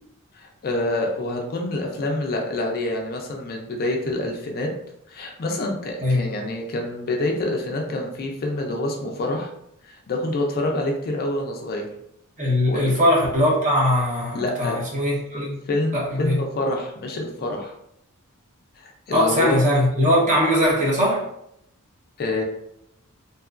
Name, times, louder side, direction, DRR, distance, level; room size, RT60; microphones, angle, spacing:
voice 1, 0.3-4.7 5.1-9.5 9.8-11.9 12.6-13.0 14.3-14.8 15.7-17.7 18.8-19.6 22.2-22.4, left 2 dB, 45° left, 1 dB, 0.4 m, -27 dB
voice 2, 12.4-15.6 15.9-16.4 19.1-21.2, left 1 dB, 35° right, -5 dB, 0.9 m, -20 dB
2.9 x 2.3 x 2.4 m, 0.75 s
head